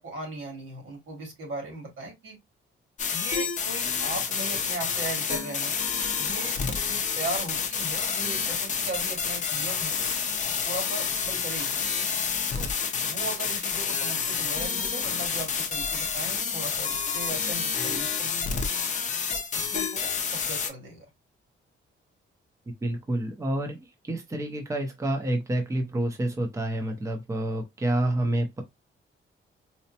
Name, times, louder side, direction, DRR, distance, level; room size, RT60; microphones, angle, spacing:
voice 1, 0.0-2.4 3.1-5.8 6.2-10.0 10.6-11.8 12.6-12.7 13.0-18.6 19.3-21.1, right 2 dB, 85° right, 2.1 m, -38 dB
sound 1, 3.0-20.7, left 6 dB, 35° left, 0.5 m, -29 dB
voice 2, 22.8-28.6, right 1 dB, 15° right, 0.6 m, -28 dB
4.2 x 2.0 x 2.8 m
wide cardioid pair, 165°, 21 cm